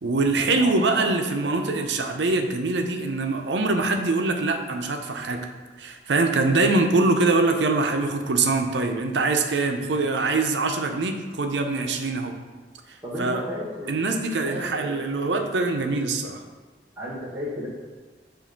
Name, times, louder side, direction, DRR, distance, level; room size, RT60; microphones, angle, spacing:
voice 1, 0.0-5.5 5.8-12.3 13.2-13.4 13.9-16.4, right 3 dB, 85° right, 5 dB, 0.6 m, -23 dB
voice 2, 0.6-0.9 1.4-1.5 13.0-14.0 14.4-15.1 17.0-17.7, left 1 dB, 10° right, -6 dB, 1.7 m, -34 dB
7.4 x 2.6 x 5.2 m, 1.4 s
head